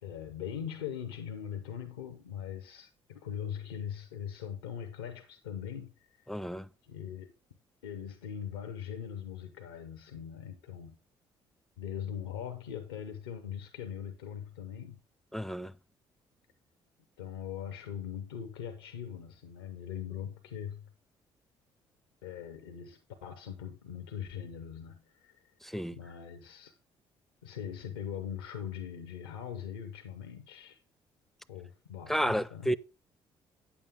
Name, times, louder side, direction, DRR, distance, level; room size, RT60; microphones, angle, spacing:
voice 1, 0.0-6.1 6.9-7.3 7.8-11.0 11.8-15.0 17.2-20.9 22.2-25.4 25.9-26.8 27.4-30.8 31.5-32.7, left 8 dB, 90° left, 0.7 m, -41 dB
voice 2, 6.3-6.7 15.3-15.7 25.6-26.0 32.1-32.8, equal, ahead, 0.5 m, -31 dB
8.7 x 7.2 x 3.6 m
hypercardioid pair, 50°, 12 cm